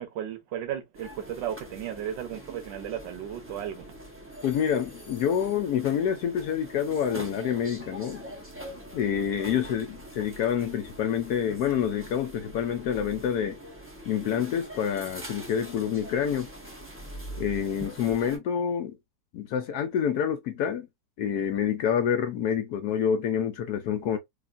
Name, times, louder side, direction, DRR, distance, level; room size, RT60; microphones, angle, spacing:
voice 1, 0.0-3.8, right 10 dB, 80° right, 1.5 m, -35 dB
sound 1, 0.9-18.4, right 1 dB, 20° right, 0.3 m, -43 dB
voice 2, 4.4-8.3 8.9-13.6 14.0-16.5 17.4-19.0 19.3-20.9 21.2-24.2, left 8 dB, 70° left, 1.0 m, -27 dB
3.4 x 2.4 x 2.4 m
omnidirectional pair, 2.0 m